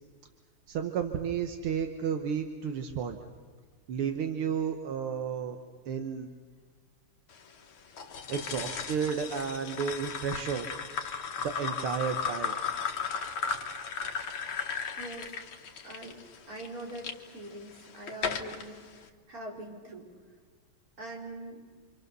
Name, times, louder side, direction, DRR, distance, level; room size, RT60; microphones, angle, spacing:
voice 1, 0.7-3.2 3.9-5.6 5.9-6.3 8.3-10.7 11.4-12.6, right 7 dB, 80° right, 6 dB, 2.0 m, -32 dB
sound 1, 8.0-17.1 17.7-18.6, left 6 dB, 70° left, 2.1 m, -35 dB
voice 2, 15.0-15.4 15.8-16.2 16.5-18.9 19.3-20.1 21.0-21.6, right 1 dB, 40° right, -1 dB, 4.6 m, -42 dB
27.0 x 26.5 x 6.8 m, 1.5 s
omnidirectional pair, 2.3 m